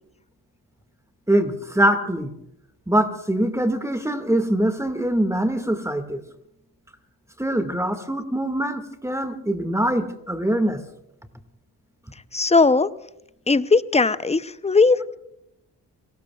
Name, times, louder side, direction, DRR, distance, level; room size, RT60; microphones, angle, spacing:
voice 1, 1.3-2.3 2.9-6.2 7.4-10.8, right 1 dB, 5° right, 7 dB, 2.0 m, -23 dB
voice 2, 12.3-12.9 13.5-15.2, left 4 dB, 15° left, 15 dB, 0.8 m, -18 dB
30.0 x 19.0 x 2.4 m, 0.84 s
hypercardioid pair, 45°, 42 cm